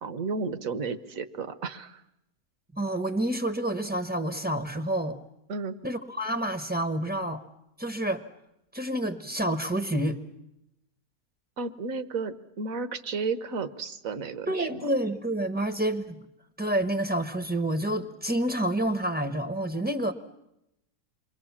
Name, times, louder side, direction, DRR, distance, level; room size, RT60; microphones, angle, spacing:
voice 1, 0.0-2.0 5.5-5.8 11.6-14.7, right 4 dB, 65° right, 11 dB, 1.5 m, -33 dB
voice 2, 2.7-5.2 5.8-7.4 7.8-8.2 8.7-10.2 14.5-16.2 16.6-20.1, right 1 dB, 10° right, 7 dB, 0.8 m, -28 dB
28.0 x 22.5 x 7.3 m, 0.87 s
omnidirectional pair, 1.6 m